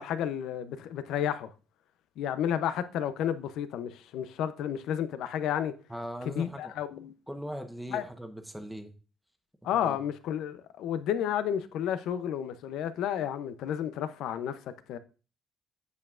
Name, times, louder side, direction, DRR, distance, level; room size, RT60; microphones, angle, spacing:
voice 1, 0.0-1.5 2.2-5.7 6.3-7.1 7.9-8.0 9.6-14.6 14.9-15.0, left 9 dB, 85° left, 0.6 m, -31 dB
voice 2, 5.9-6.7 7.3-8.9 9.7-10.0, equal, 5° right, 1.0 m, -39 dB
8.2 x 6.9 x 2.4 m
cardioid pair, 120°, 0 cm